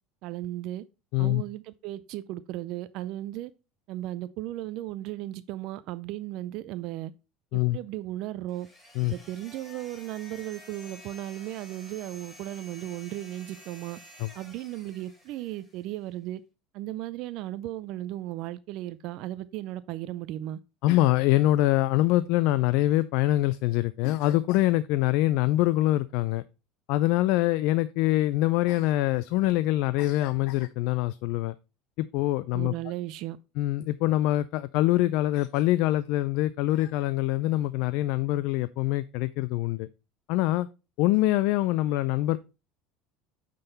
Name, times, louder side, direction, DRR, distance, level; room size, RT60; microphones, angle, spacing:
voice 1, 0.2-0.8 1.2-3.5 3.9-7.1 7.5-8.7 9.1-14.0 14.3-16.4 16.7-20.6 32.5-33.4, right 14 dB, 60° right, 0.4 m, -36 dB
sound 1, 8.5-15.9, left 1 dB, 10° left, 3.5 m, -51 dB
voice 2, 20.8-26.4 26.9-31.5 32.0-32.7 33.6-39.9 40.3-40.7 41.0-42.4, left 16 dB, 65° left, 0.3 m, -24 dB
8.9 x 3.8 x 3.9 m
supercardioid pair, 105°, 0 cm